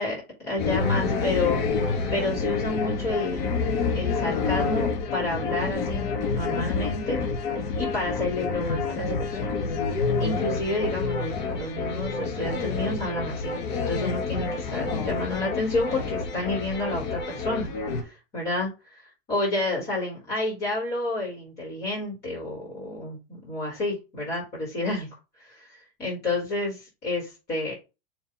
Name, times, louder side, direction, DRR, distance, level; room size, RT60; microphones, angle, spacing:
voice 1, 0.0-1.6 2.1-3.4 3.9-7.2 7.8-9.6 10.2-13.6 13.9-25.1 25.4-27.7, left 2 dB, 35° left, -4 dB, 4.1 m, -30 dB
sound 1, 0.6-18.0, left 4 dB, 60° left, 3.4 m, -28 dB
7.0 x 3.5 x 4.1 m, 0.27 s
hypercardioid pair, 125°, 29 cm